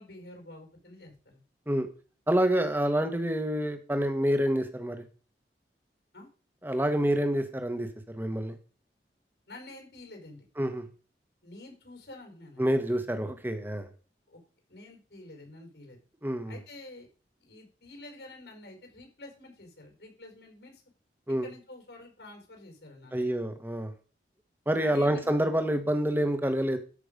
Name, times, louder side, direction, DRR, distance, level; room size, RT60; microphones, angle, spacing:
voice 1, 0.0-1.4 6.1-6.3 9.5-10.4 11.4-12.7 14.3-14.4 14.7-16.0 16.5-17.1 17.4-20.8 21.4-23.3 24.7-25.3, left 2 dB, 80° left, 3 dB, 4.6 m, -48 dB
voice 2, 2.3-5.0 6.6-8.6 10.6-10.8 12.6-13.9 16.2-16.6 21.3-21.5 23.1-23.9 24.7-26.8, right 1 dB, 10° right, 8 dB, 1.2 m, -27 dB
13.5 x 6.0 x 5.1 m, 0.39 s
head